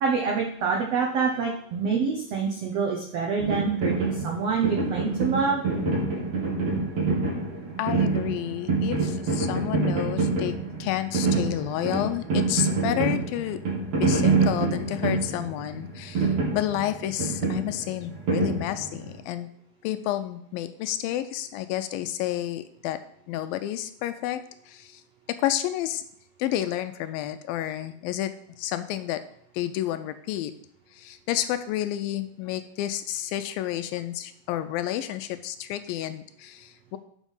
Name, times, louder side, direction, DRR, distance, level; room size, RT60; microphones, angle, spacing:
voice 1, 0.0-5.6, right 5 dB, 80° right, 0 dB, 1.4 m, -26 dB
sound 1, 3.4-19.1, right 3 dB, 50° right, 3.0 m, -26 dB
voice 2, 7.8-13.6 14.0-19.5 19.8-23.0 23.3-25.0 25.4-26.0 26.4-28.3 28.6-29.2 29.5-30.5 30.9-37.0, left 13 dB, 80° left, 10 dB, 2.3 m, -30 dB
7.2 x 6.1 x 5.5 m, 0.67 s
omnidirectional pair, 4.3 m